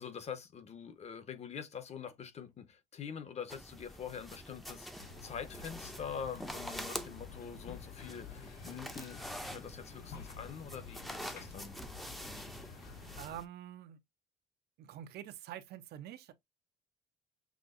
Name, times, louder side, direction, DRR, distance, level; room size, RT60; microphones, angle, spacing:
voice 1, 0.0-11.7, left 7 dB, 40° left, 1.0 m, -45 dB
sound 1, 3.5-13.4, equal, ahead, 0.6 m, -46 dB
sound 2, 5.0-13.3, left 5 dB, 65° left, 1.1 m, -50 dB
voice 2, 13.2-14.0 14.8-16.3, right 11 dB, 70° right, 0.7 m, -46 dB
6.1 x 2.6 x 2.5 m
cardioid pair, 110°, 17 cm